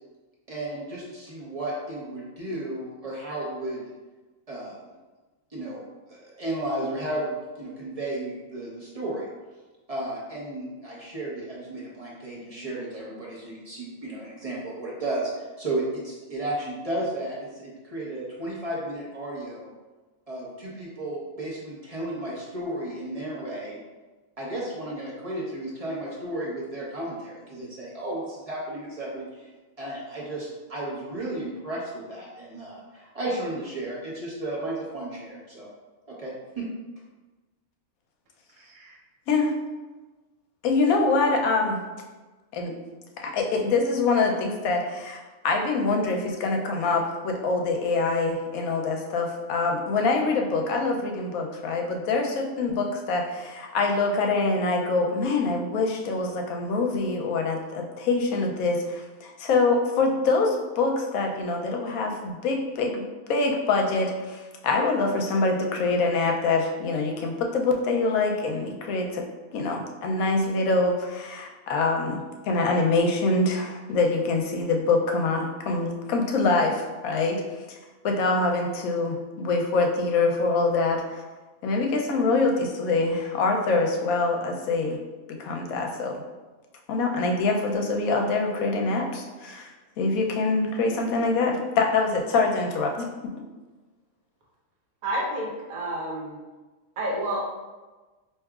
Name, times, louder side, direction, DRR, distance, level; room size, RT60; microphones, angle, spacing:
voice 1, 0.5-3.9 4.5-4.7 5.5-5.8 6.1-9.3 9.9-19.7 20.3-23.8 24.4-29.5 29.8-35.7 36.1-36.7, right 1 dB, 35° right, -5 dB, 0.7 m, -33 dB
voice 2, 38.6-38.9 95.0-96.4 97.0-97.4, right 1 dB, 75° right, -2 dB, 1.2 m, -30 dB
voice 3, 40.6-41.8 42.5-42.8 43.2-69.3 69.5-77.4 77.7-77.8 78.0-81.2 81.6-85.0 85.3-86.2 86.9-89.7 90.0-93.1, left 3 dB, 80° left, 2 dB, 1.0 m, -25 dB
4.6 x 2.9 x 2.3 m, 1.2 s
omnidirectional pair, 1.5 m